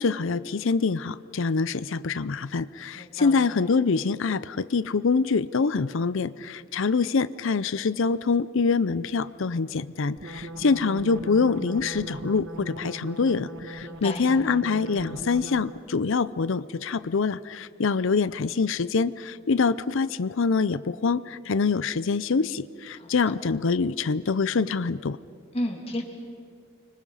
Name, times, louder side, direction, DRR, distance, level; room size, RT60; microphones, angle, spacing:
voice 1, 0.0-25.2, left 4 dB, 65° left, 16 dB, 0.6 m, -25 dB
voice 2, 2.9-3.5 10.5-10.7 13.8-14.2 23.0-23.3 25.5-26.0, left 1 dB, 30° left, 1 dB, 2.9 m, -33 dB
sound 1, 10.2-15.9, right 2 dB, 55° right, 1.4 m, -39 dB
30.0 x 25.0 x 5.6 m, 2.2 s
head